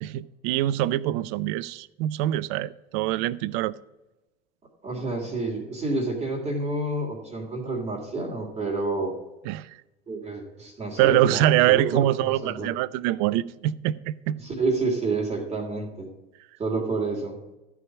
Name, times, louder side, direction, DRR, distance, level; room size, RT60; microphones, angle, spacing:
voice 1, 0.0-3.7 9.5-9.7 11.0-14.4, right 14 dB, 50° right, 0.5 m, -24 dB
voice 2, 4.8-9.1 10.1-12.7 14.4-16.1 16.6-17.3, right 3 dB, 20° right, 2.9 m, -29 dB
14.0 x 4.8 x 7.2 m
figure-of-eight pair, 80°, 31 cm